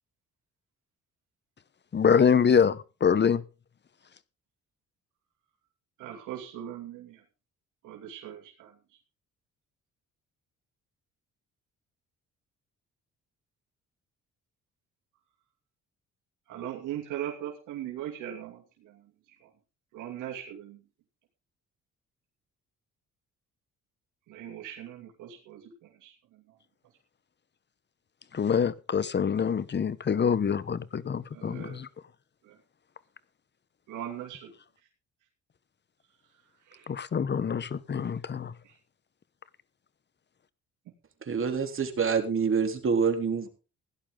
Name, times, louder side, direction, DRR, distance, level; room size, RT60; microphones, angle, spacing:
voice 1, 1.9-3.4 28.3-31.9 36.9-38.5, left 7 dB, 35° left, 1.0 m, -25 dB
voice 2, 6.0-7.2 7.8-8.7 16.5-19.0 19.4-19.5 19.9-20.8 24.3-25.7 26.0-26.1 31.3-31.8 32.4-32.6 33.9-34.5 36.7-36.9 38.6-38.7, right 11 dB, 90° right, 2.8 m, -39 dB
voice 3, 41.3-43.5, right 6 dB, 45° right, 3.4 m, -26 dB
16.5 x 11.0 x 3.8 m
cardioid pair, 90°, 30 cm